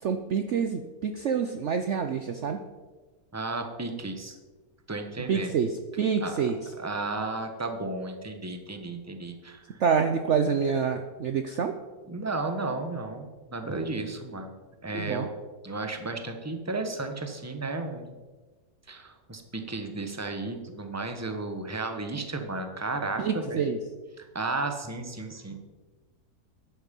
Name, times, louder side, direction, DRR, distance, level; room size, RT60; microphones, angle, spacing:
voice 1, 0.0-2.6 5.3-6.7 9.8-11.7 14.9-15.3 23.2-23.8, right 6 dB, 55° right, 7 dB, 0.9 m, -27 dB
voice 2, 3.3-4.3 4.9-5.6 6.2-6.5 6.8-9.6 12.1-14.5 14.8-15.3 15.6-18.1 18.9-23.6 24.2-25.6, right 3 dB, 10° right, 6 dB, 1.2 m, -33 dB
13.0 x 10.5 x 5.3 m, 1.3 s
omnidirectional pair, 1.7 m